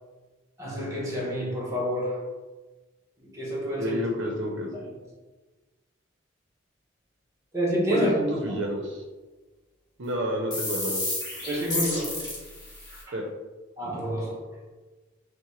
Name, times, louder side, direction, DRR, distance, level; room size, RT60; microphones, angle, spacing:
voice 1, 0.6-2.3 3.2-4.0 7.5-8.1 8.5-8.6 11.5-12.3 12.9-13.1 13.8-14.5, equal, 15° right, -3 dB, 0.9 m, -29 dB
voice 2, 3.8-4.8 7.9-9.0 10.0-11.0 13.1-13.2, equal, 70° right, 1 dB, 0.6 m, -29 dB
sound 1, 10.5-13.0, left 2 dB, 20° left, 1.1 m, -31 dB
5.7 x 2.1 x 3.1 m, 1.2 s
head